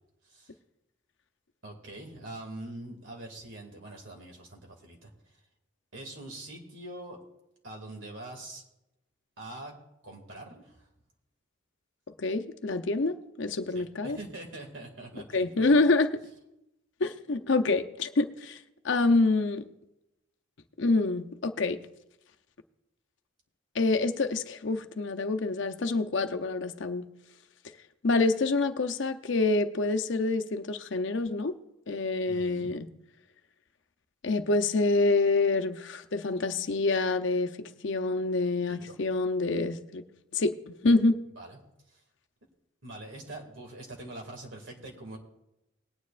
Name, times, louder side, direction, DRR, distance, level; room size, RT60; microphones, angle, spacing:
voice 1, 1.6-5.1 5.9-7.2 7.6-8.6 9.4-9.7 10.0-10.9 13.7-15.8 32.3-32.7 38.7-38.9 41.4-41.6 41.9-42.0 42.8-45.2, right 2 dB, 65° right, 1 dB, 2.3 m, -44 dB
voice 2, 12.2-14.2 15.3-16.1 17.0-18.6 18.8-19.6 20.8-21.8 23.7-27.1 28.0-31.5 31.9-32.9 34.2-40.0 40.3-41.2, left 3 dB, 60° left, 6 dB, 0.7 m, -27 dB
19.5 x 9.5 x 2.5 m, 0.89 s
head